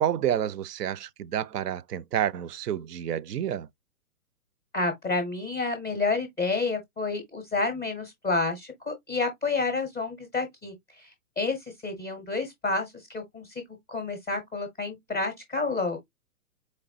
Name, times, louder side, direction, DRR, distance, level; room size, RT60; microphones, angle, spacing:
voice 1, 0.0-3.7, right 10 dB, 85° right, 0.5 m, -29 dB
voice 2, 4.7-11.1 11.4-13.5 13.9-16.0, left 3 dB, 5° left, 0.5 m, -29 dB
4.3 x 3.2 x 2.5 m
hypercardioid pair, 135°, 46 cm